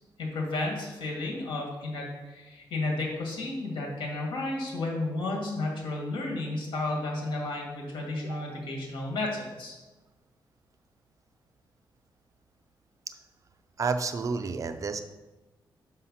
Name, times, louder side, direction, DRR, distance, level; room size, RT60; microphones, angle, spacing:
voice 1, 0.2-9.8, left 2 dB, 75° left, -1 dB, 2.1 m, -32 dB
voice 2, 8.2-8.6 13.8-15.0, right 4 dB, 40° right, 8 dB, 0.5 m, -31 dB
5.7 x 5.7 x 5.7 m, 1.1 s
wide cardioid pair, 140°, 8 cm